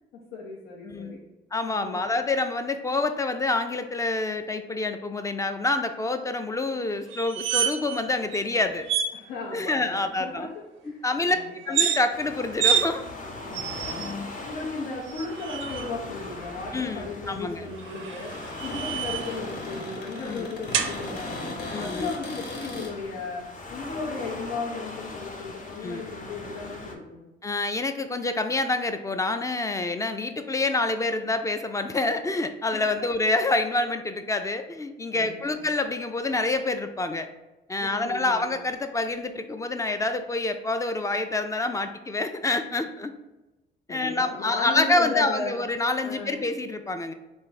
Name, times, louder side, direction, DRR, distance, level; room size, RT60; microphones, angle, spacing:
voice 1, 0.1-1.2 1.7-2.0 9.1-11.4 13.4-14.1 14.4-27.3 32.7-32.8 35.1-35.6 37.8-38.5 43.9-45.6 46.0-46.4, left 3 dB, 90° left, -3 dB, 0.7 m, -36 dB
voice 2, 0.8-1.2 1.5-8.9 9.5-10.5 11.0-11.4 11.7-13.1 14.0-14.3 16.7-17.6 20.2-20.5 21.7-22.1 25.8-26.0 27.4-37.3 37.7-43.1 43.9-47.1, left 2 dB, 15° left, 8 dB, 0.3 m, -27 dB
sound 1, 7.1-8.0 8.3-8.4 8.9-9.1 11.6-12.0 12.6-12.9 13.5-14.1 15.1-15.9 17.8-19.4 20.7-20.9, right 8 dB, 80° right, 0.4 m, -27 dB
Waves surf, 12.1-27.0, left 2 dB, 40° left, 0.7 m, -40 dB
Cupboard open or close, 16.2-22.9, left 2 dB, 60° left, 1.0 m, -40 dB
3.4 x 2.5 x 4.0 m, 1.0 s
cardioid pair, 90°, 20 cm